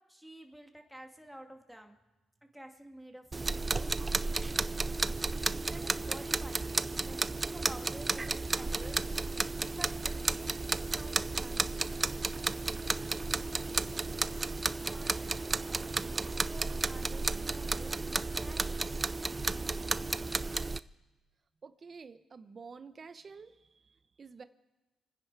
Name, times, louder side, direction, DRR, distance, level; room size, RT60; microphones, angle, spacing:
voice 1, 0.1-2.0 2.5-4.0 5.7-6.7 7.1-9.0 9.7-10.5 10.8-12.0 12.8-13.9 14.9-18.9, equal, ahead, 3 dB, 2.3 m, -51 dB
sound 1, 3.3-20.8, right 3 dB, 25° right, 0.5 m, -33 dB
voice 2, 21.6-24.4, right 5 dB, 40° right, 11 dB, 1.0 m, -50 dB
29.0 x 10.0 x 4.8 m, 1.1 s
cardioid pair, 90°, 0 cm